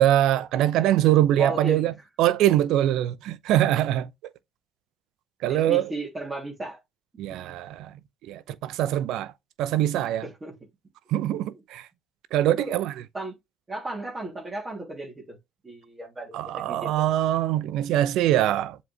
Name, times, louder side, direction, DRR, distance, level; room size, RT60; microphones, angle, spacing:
voice 1, 0.0-1.9 2.2-4.1 5.4-5.9 7.2-7.9 8.2-9.3 9.6-10.2 11.1-11.9 12.3-12.9 16.3-18.8, right 13 dB, 70° right, 0.7 m, -23 dB
voice 2, 1.4-1.9 5.5-6.8 10.2-10.5 12.6-12.7 13.1-13.3 13.7-15.4 15.6-16.4 16.7-16.9, right 2 dB, 25° right, 3.1 m, -35 dB
7.4 x 4.1 x 3.4 m
supercardioid pair, 75°, 0 cm